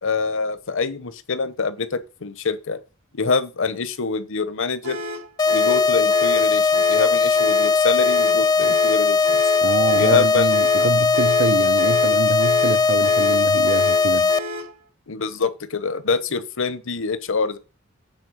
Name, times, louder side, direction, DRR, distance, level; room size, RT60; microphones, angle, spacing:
voice 1, 0.0-2.8 3.2-5.0 5.5-9.4 10.0-10.5 10.8-10.9 15.1-17.6, left 4 dB, 65° left, 1.0 m, -25 dB
sound 1, 4.8-14.8, equal, 85° right, 3.6 m, -33 dB
sound 2, 5.4-14.4, left 5 dB, 20° left, 0.3 m, -18 dB
voice 2, 9.6-14.3, right 5 dB, 60° right, 0.4 m, -25 dB
9.0 x 4.4 x 6.3 m
head